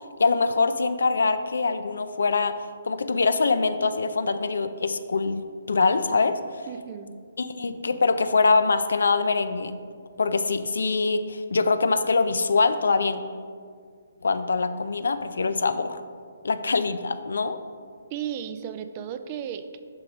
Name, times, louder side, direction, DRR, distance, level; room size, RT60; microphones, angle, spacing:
voice 1, 0.2-2.5 2.9-6.7 7.4-9.7 10.2-13.2 14.2-16.0 16.4-17.6, left 4 dB, 65° left, 10 dB, 0.4 m, -24 dB
voice 2, 6.7-7.1 18.1-19.8, right 9 dB, 30° right, 9 dB, 0.3 m, -34 dB
6.2 x 3.8 x 5.2 m, 2.1 s
figure-of-eight pair, 135°, 0 cm